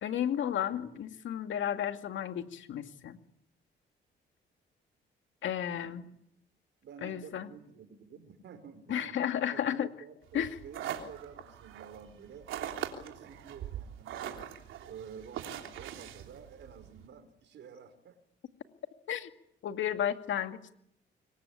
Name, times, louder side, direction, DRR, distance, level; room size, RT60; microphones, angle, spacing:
voice 1, 0.0-3.2 5.4-6.0 7.0-7.5 8.9-9.9 10.3-10.6 19.1-19.3 19.6-20.8, left 10 dB, 70° left, 7 dB, 2.3 m, -33 dB
voice 2, 5.7-6.0 6.8-9.2 9.5-12.5 12.9-14.4 14.8-18.2, right 7 dB, 65° right, 10 dB, 5.4 m, -50 dB
sound 1, 10.3-17.1, right 10 dB, 85° right, 3.4 m, -42 dB
26.0 x 23.0 x 8.7 m, 0.74 s
cardioid pair, 90°, 20 cm